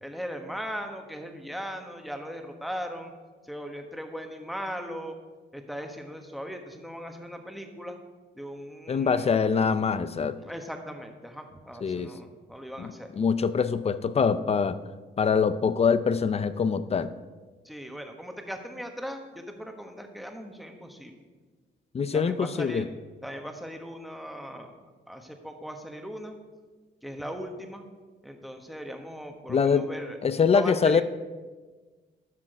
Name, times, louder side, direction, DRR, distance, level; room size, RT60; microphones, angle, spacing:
voice 1, 0.0-3.1 3.4-5.2 5.5-8.0 8.3-9.3 10.5-13.1 17.6-21.2 22.1-22.8 23.2-24.7 25.1-26.4 27.0-27.8 28.2-30.2 30.5-31.0, equal, ahead, 5 dB, 1.2 m, -38 dB
voice 2, 8.9-10.4 11.8-12.1 12.8-14.8 15.2-17.1 21.9-22.9 29.5-29.9 30.2-31.0, left 6 dB, 30° left, 14 dB, 0.5 m, -24 dB
12.0 x 6.1 x 4.9 m, 1.4 s
cardioid pair, 90°, 20 cm